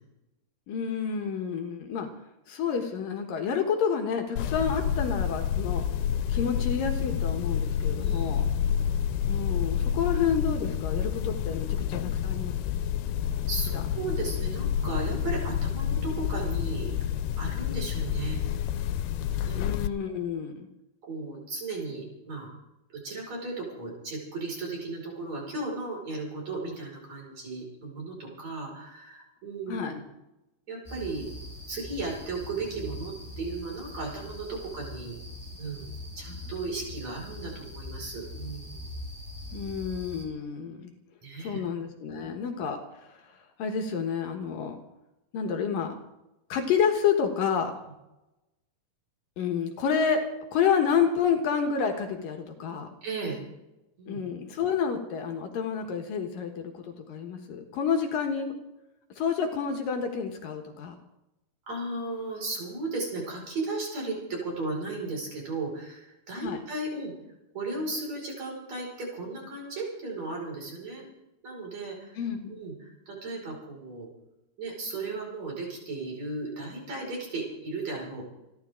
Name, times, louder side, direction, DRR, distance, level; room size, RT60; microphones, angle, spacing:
voice 1, 0.7-2.1 2.5-5.8 6.3-8.5 9.3-12.5 13.7-13.8 19.6-20.7 29.7-30.0 39.5-40.9 41.4-43.3 43.6-44.8 45.3-45.9 46.5-47.7 49.4-50.3 50.5-52.9 54.1-58.6 59.2-60.9 66.4-66.6 72.2-72.6, left 7 dB, 70° left, 4 dB, 2.8 m, -29 dB
sound 1, 4.4-19.9, left 9 dB, 90° left, 2.7 m, -29 dB
voice 2, 8.0-8.7 13.5-17.0 17.4-18.7 19.5-19.7 21.0-22.5 22.9-30.0 30.7-31.3 31.7-35.2 35.6-38.9 41.2-41.6 42.1-42.3 53.0-53.4 54.0-54.2 61.7-67.1 67.5-71.1 71.4-72.2 72.5-74.1 74.6-78.3, right 3 dB, 45° right, -2 dB, 6.7 m, -35 dB
sound 2, 30.8-40.2, left 2 dB, ahead, 4.7 m, -42 dB
28.5 x 12.5 x 3.8 m, 0.93 s
omnidirectional pair, 4.4 m